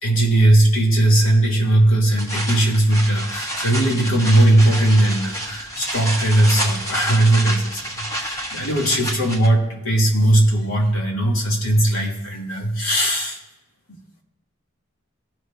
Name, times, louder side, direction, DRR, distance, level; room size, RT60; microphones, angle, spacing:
voice 1, 0.0-13.4, right 1 dB, 90° left, -2 dB, 2.6 m, -18 dB
sound 1, 2.2-9.5, equal, 15° left, 1.4 m, -29 dB
19.0 x 6.5 x 2.6 m, 1.0 s
head